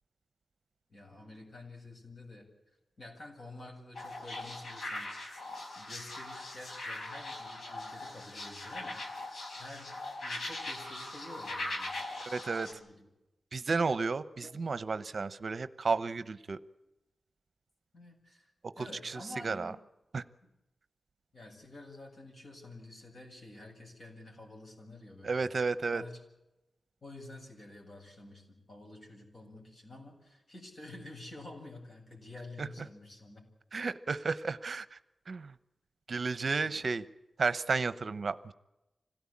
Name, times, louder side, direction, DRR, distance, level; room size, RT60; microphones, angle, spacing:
voice 1, 0.9-2.5 3.0-5.3 5.7-12.0 12.5-13.1 14.4-14.6 17.9-18.5 18.8-19.8 21.3-25.5 25.9-26.2 27.0-33.4 36.6-36.8, left 2 dB, 50° left, 1 dB, 8.0 m, -49 dB
sound 1, 4.0-12.7, left 2 dB, 80° left, 5.3 m, -41 dB
voice 2, 12.3-12.7 13.5-16.6 18.8-19.7 20.1-20.2 25.2-26.0 32.6-32.7 33.7-35.0 35.3-35.5 36.1-37.0 37.4-38.5, right 4 dB, 55° right, 13 dB, 0.8 m, -32 dB
26.0 x 17.0 x 8.7 m, 0.97 s
wide cardioid pair, 135°, 0 cm